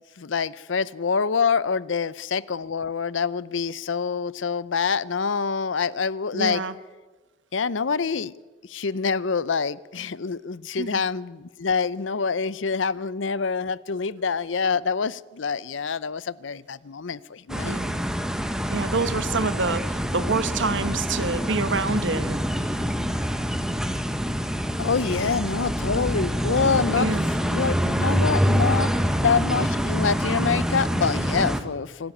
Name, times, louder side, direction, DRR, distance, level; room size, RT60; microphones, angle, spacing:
voice 1, 0.2-6.6 7.5-8.3 8.6-17.8 24.8-27.1 27.5-32.1, left 5 dB, 80° left, 19 dB, 0.6 m, -26 dB
voice 2, 6.3-6.7 10.8-11.0 17.6-18.0 18.7-22.4 27.0-27.3, right 4 dB, 75° right, 13 dB, 1.2 m, -27 dB
sound 1, 17.5-31.6, equal, 5° right, 1.3 m, -25 dB
26.0 x 12.5 x 9.0 m, 1.3 s
head